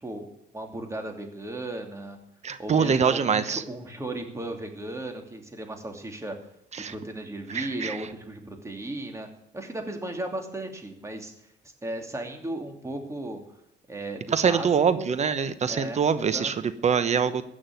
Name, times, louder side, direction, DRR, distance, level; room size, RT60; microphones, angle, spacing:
voice 1, 0.5-2.2 2.6-6.3 6.8-9.3 9.5-11.3 11.8-13.4 13.9-14.7 14.9-15.1 15.7-16.5, right 1 dB, 15° right, 4 dB, 2.8 m, -35 dB
voice 2, 2.4-3.6 6.7-6.9 7.5-8.0 14.3-17.4, right 6 dB, 40° right, 13 dB, 0.9 m, -24 dB
16.0 x 6.3 x 9.2 m, 0.76 s
cardioid pair, 90°, 18 cm